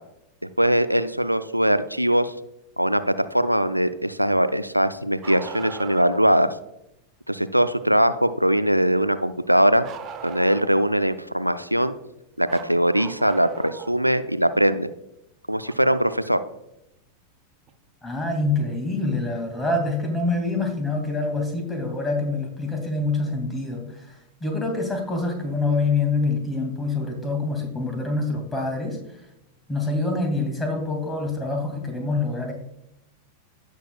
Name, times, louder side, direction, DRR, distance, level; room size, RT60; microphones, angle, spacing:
voice 1, 0.6-2.3 2.8-6.6 7.3-9.8 10.2-11.9 12.4-14.9 15.5-16.4, equal, 90° right, 13 dB, 0.4 m, -21 dB
Bark, 5.2-6.3 9.8-10.9 12.5-14.0 15.7-15.8 17.7-17.8 18.9-19.0, right 7 dB, 30° right, 0.9 m, -38 dB
voice 2, 18.0-29.0 29.7-32.5, left 3 dB, 10° left, 3 dB, 2.4 m, -26 dB
16.0 x 6.5 x 2.3 m, 0.86 s
figure-of-eight pair, 90°, 0 cm